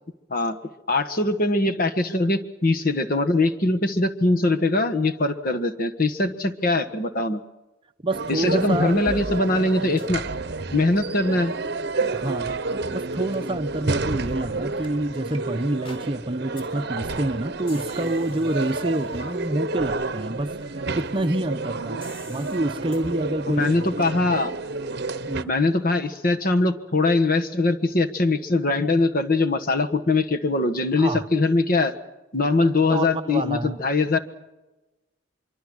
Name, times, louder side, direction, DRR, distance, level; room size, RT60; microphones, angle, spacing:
voice 1, 0.9-7.4 8.3-10.2 10.7-11.5 23.5-24.5 25.5-31.9 32.3-34.2, left 2 dB, 45° left, 7 dB, 1.4 m, -22 dB
voice 2, 8.0-8.9 12.1-12.5 12.9-22.0 22.3-23.7 25.3-25.5 31.0-31.3 32.9-33.8, right 1 dB, 25° right, 9 dB, 0.7 m, -27 dB
sound 1, 8.1-25.4, right 3 dB, 55° right, 0.9 m, -30 dB
sound 2, 9.1-9.7 10.0-10.1 10.6-11.0 11.3-11.5 12.0-12.2 12.7-13.0 13.4-13.6 14.1-14.3 14.8-14.9 15.3-15.4 15.9-16.1 16.6-16.7 17.0-17.3 17.7-19.5 22.0-22.6 22.9-23.0, equal, 25° left, 3.9 m, -42 dB
24.5 x 24.0 x 6.3 m, 1.0 s
head